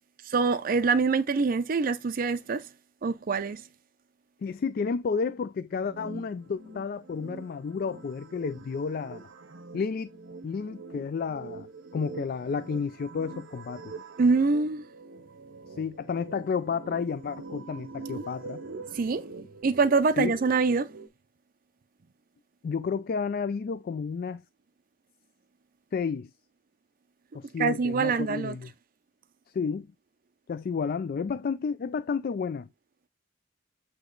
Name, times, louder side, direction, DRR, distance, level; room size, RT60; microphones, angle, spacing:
voice 1, 0.3-2.6 3.0-3.6 14.2-14.8 18.9-19.2 19.6-20.9 27.6-28.5, right 4 dB, 45° right, 0.4 m, -24 dB
voice 2, 4.4-9.2 9.7-10.1 10.4-11.7 11.9-13.9 15.7-18.6 20.2-20.4 22.6-24.4 25.9-26.3 27.3-28.7 29.5-29.9 30.5-32.7, left 5 dB, 50° left, 0.3 m, -31 dB
sound 1, 5.7-21.1, right 3 dB, 75° right, 0.8 m, -44 dB
8.4 x 3.0 x 3.8 m
head